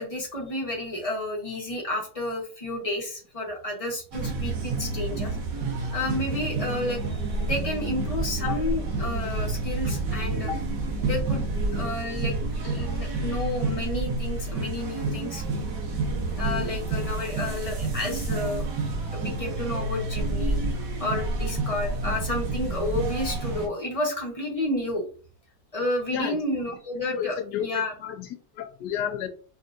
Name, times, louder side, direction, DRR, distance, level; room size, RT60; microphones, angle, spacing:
voice 1, 0.0-5.4 5.9-7.0 7.3-10.6 11.0-12.3 12.6-15.4 16.4-18.7 19.1-25.0 25.7-27.9, left 1 dB, 25° left, -1 dB, 0.9 m, -31 dB
sound 1, 4.1-23.7, right 2 dB, 80° right, 1.7 m, -29 dB
voice 2, 27.1-29.3, left 9 dB, 75° left, 7 dB, 1.2 m, -32 dB
5.5 x 2.7 x 2.5 m, 0.40 s
omnidirectional pair, 1.9 m